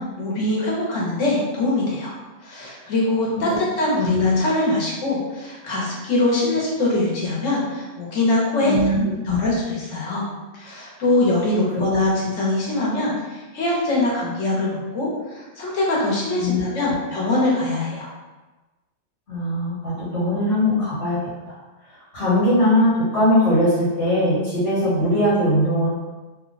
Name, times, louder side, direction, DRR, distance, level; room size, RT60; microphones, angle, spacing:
voice 1, 0.2-2.1 2.4-8.7 9.2-10.2 10.5-18.1, left 2 dB, 85° left, -4 dB, 1.3 m, -23 dB
voice 2, 8.6-9.4 16.4-16.6 19.3-21.2 22.1-25.9, left 1 dB, 65° left, -11 dB, 1.6 m, -20 dB
3.1 x 2.3 x 3.9 m, 1.2 s
omnidirectional pair, 1.3 m